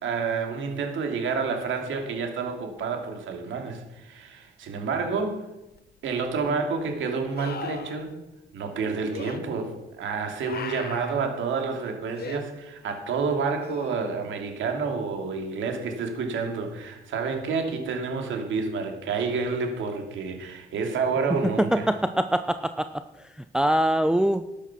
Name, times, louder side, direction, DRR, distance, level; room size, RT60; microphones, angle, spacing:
voice 1, 0.0-5.4 6.0-8.1 8.5-21.9, right 5 dB, 75° right, 3 dB, 2.7 m, -29 dB
sound 1, 5.8-5.9 7.4-8.0 9.1-9.4 10.4-11.2 12.2-12.4 13.6-14.3 17.4-17.5, left 7 dB, 50° left, 1.2 m, -38 dB
voice 2, 21.6-23.0 23.5-24.4, right 1 dB, 5° right, 10 dB, 0.5 m, -23 dB
13.0 x 8.6 x 6.1 m, 0.97 s
cardioid pair, 90°, 20 cm